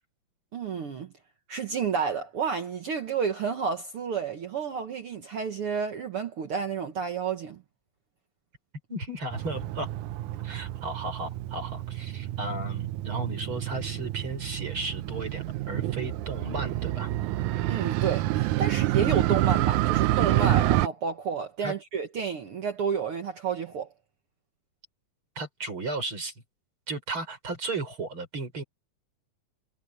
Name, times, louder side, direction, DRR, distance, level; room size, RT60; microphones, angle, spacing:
voice 1, 0.5-1.1 1.5-7.6 17.7-23.9, right 6 dB, 55° right, 1.7 m, -30 dB
voice 2, 8.9-9.9 10.4-17.1 21.6-21.7 25.4-26.3 26.9-28.6, right 2 dB, 40° right, 6.4 m, -35 dB
Motorcycle, 9.3-20.9, right 15 dB, 75° right, 2.0 m, -28 dB
omnidirectional pair, 3.8 m